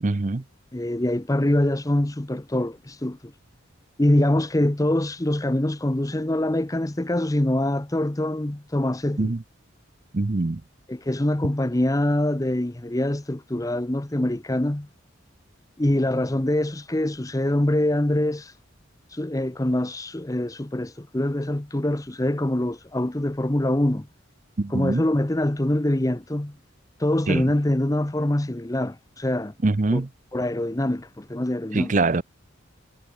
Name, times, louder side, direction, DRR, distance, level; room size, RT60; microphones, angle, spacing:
voice 1, 0.0-0.4 9.2-9.4 10.1-10.6 24.6-25.0 27.3-27.5 29.6-30.1 31.7-32.2, right 3 dB, 40° right, 0.6 m, -23 dB
voice 2, 0.7-3.3 4.0-9.3 10.9-14.9 15.8-18.5 19.1-24.1 24.7-26.5 27.0-29.5 29.9-30.0 30.3-32.0, left 1 dB, 15° left, 0.7 m, -24 dB
head